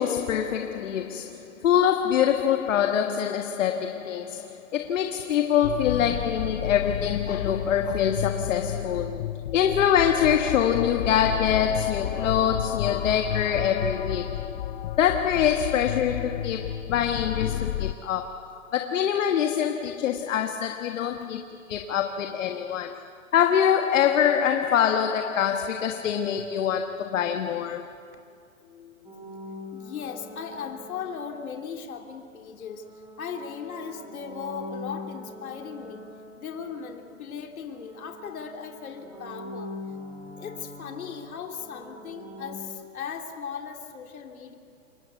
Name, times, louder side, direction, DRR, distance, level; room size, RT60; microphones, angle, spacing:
voice 1, 0.0-14.5 15.0-21.4 21.7-23.0 23.3-27.9, left 9 dB, 60° left, 1.6 m, -25 dB
sound 1, 5.6-17.9, left 11 dB, 40° left, 0.6 m, -31 dB
voice 2, 22.5-23.1 28.6-29.3 29.7-32.8 33.2-36.0 36.4-39.8 40.4-44.5, left 7 dB, 75° left, 3.2 m, -38 dB
sound 2, 29.0-31.9 32.6-37.4 37.7-42.5, left 2 dB, 10° right, 4.0 m, -43 dB
28.0 x 22.5 x 8.3 m
hypercardioid pair, 155°, 42 cm